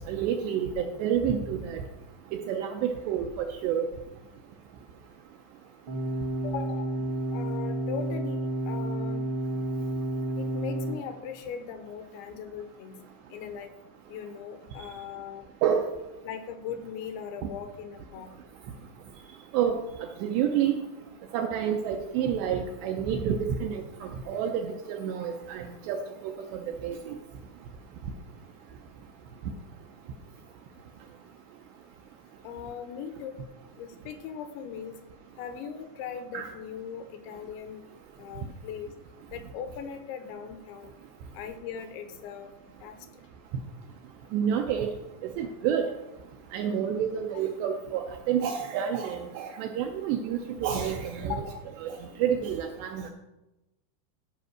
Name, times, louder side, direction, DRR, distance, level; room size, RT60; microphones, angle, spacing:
voice 1, 0.1-1.8 2.5-3.9 15.6-15.9 19.5-19.8 20.2-20.7 21.3-27.2 36.3-36.5 44.3-44.9 45.2-45.8 46.5-51.4 51.8-53.1, right 8 dB, 80° right, 3 dB, 2.5 m, -29 dB
sound 1, 5.9-10.9, right 1 dB, 60° right, 1.2 m, -30 dB
voice 2, 6.4-6.9 7.3-9.2 10.4-13.0 13.3-13.7 14.1-15.5 16.2-18.3 32.4-33.4 33.8-34.9 35.4-37.8 38.2-38.9 39.3-40.9 41.3-42.5 42.8-42.9 51.3-51.6, left 7 dB, 80° left, 7 dB, 2.9 m, -39 dB
13.5 x 5.3 x 6.3 m, 0.98 s
omnidirectional pair, 5.6 m